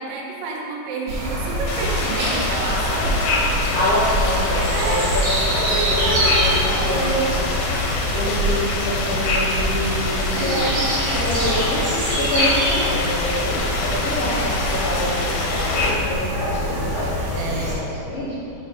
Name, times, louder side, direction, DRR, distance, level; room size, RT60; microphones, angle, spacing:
voice 1, 0.0-3.4 4.7-5.0 5.5-7.4 10.3-11.2 17.4-17.9, right 3 dB, 75° right, -2 dB, 2.5 m, -30 dB
sound 1, 1.1-17.7, equal, 50° right, 2.1 m, -24 dB
sound 2, 1.7-15.9, left 3 dB, 85° left, 2.8 m, -26 dB
voice 2, 3.7-5.4 5.8-7.4 8.1-10.7 11.0-17.1 17.4-18.4, left 1 dB, 70° left, -8 dB, 1.5 m, -26 dB
6.4 x 4.7 x 5.5 m, 3.0 s
omnidirectional pair, 4.3 m